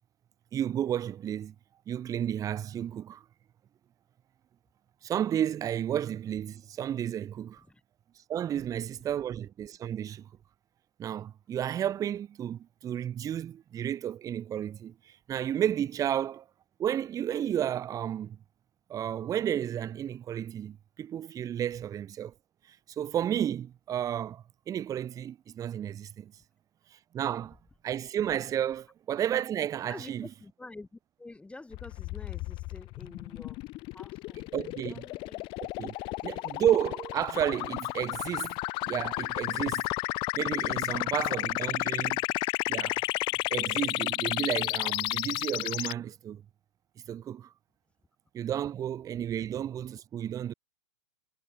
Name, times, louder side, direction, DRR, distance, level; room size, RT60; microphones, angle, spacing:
voice 1, 0.5-1.5 1.9-3.2 5.0-7.6 8.3-10.3 11.0-16.4 16.8-18.4 18.9-22.3 22.7-26.3 26.9-27.6 27.8-30.3 34.5-35.1 35.8-35.9 36.2-38.6 38.9-39.9 40.4-42.2 42.7-43.0 43.5-46.4 47.1-47.5 48.3-50.5, right 10 dB, 20° right, 0.7 m, -32 dB
voice 2, 29.9-33.7 33.9-34.5 34.9-35.5 35.9-36.4, left 2 dB, 5° left, 1.2 m, -49 dB
sound 1, 31.7-45.9, left 21 dB, 30° left, 0.3 m, -32 dB
hypercardioid pair, 110°, 17 cm